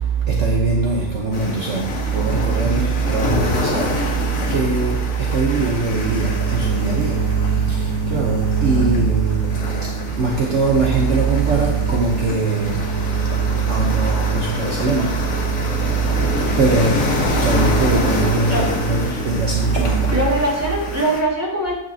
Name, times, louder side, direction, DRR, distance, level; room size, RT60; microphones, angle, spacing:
voice 1, 0.0-20.2, right 5 dB, 55° right, 1.2 m, -21 dB
sound 1, 1.3-21.2, left 3 dB, 65° left, 1.5 m, -27 dB
sound 2, 5.9-20.1, right 5 dB, 80° right, 1.6 m, -28 dB
voice 2, 20.1-21.7, right 1 dB, 10° right, 2.0 m, -21 dB
8.9 x 6.2 x 2.8 m
omnidirectional pair, 1.5 m